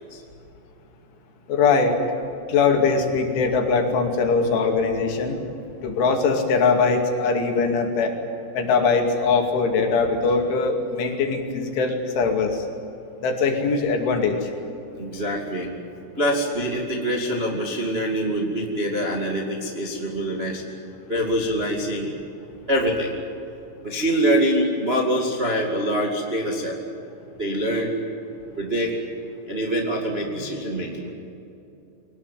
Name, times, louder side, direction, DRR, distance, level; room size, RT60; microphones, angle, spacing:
voice 1, 1.5-1.9 2.5-5.4 5.8-8.1 8.5-12.7 13.2-14.5, left 4 dB, 70° left, 3 dB, 4.9 m, -21 dB
voice 2, 15.0-15.7 16.2-20.6 21.1-22.1 22.7-23.1 23.8-26.7 27.4-28.0 28.6-28.9 29.5-31.1, equal, 30° right, 0 dB, 1.1 m, -24 dB
24.0 x 19.0 x 9.2 m, 2.9 s
omnidirectional pair, 5.7 m